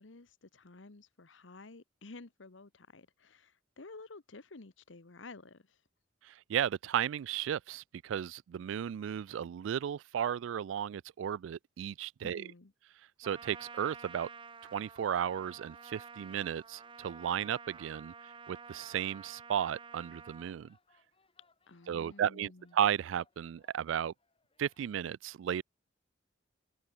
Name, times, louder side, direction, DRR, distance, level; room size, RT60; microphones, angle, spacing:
voice 1, 0.0-5.8 12.2-12.7 21.7-22.7, left 3 dB, 80° left, 1.2 m, -52 dB
voice 2, 6.2-12.5 13.2-14.3 14.7-18.1 18.5-20.8 21.9-24.1 24.6-25.6, right 9 dB, 85° right, 0.3 m, -34 dB
Trumpet, 13.2-20.5, right 5 dB, 25° right, 0.7 m, -50 dB
sound 1, 15.3-25.1, left 3 dB, 30° left, 7.1 m, -74 dB
head